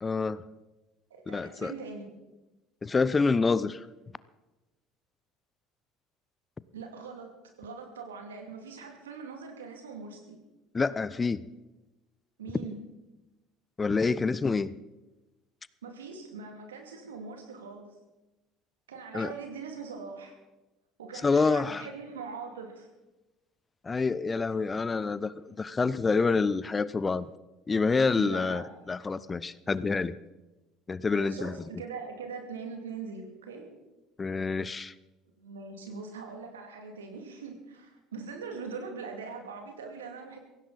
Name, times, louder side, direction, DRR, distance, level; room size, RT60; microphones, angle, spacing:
voice 1, 0.0-0.4 1.3-1.7 2.8-3.9 10.7-11.5 13.8-14.7 19.1-19.3 21.2-21.8 23.8-27.3 27.7-30.2 30.9-31.5 34.2-34.9, left 4 dB, 25° left, 18 dB, 0.6 m, -27 dB
voice 2, 1.1-2.2 6.7-7.3 7.6-10.4 12.4-12.8 15.8-17.9 18.9-20.4 21.0-22.9 28.2-28.7 31.1-33.7 35.4-40.4, right 5 dB, 80° right, 3 dB, 2.6 m, -42 dB
16.5 x 16.0 x 4.2 m, 1.1 s
hypercardioid pair, 65°, 0 cm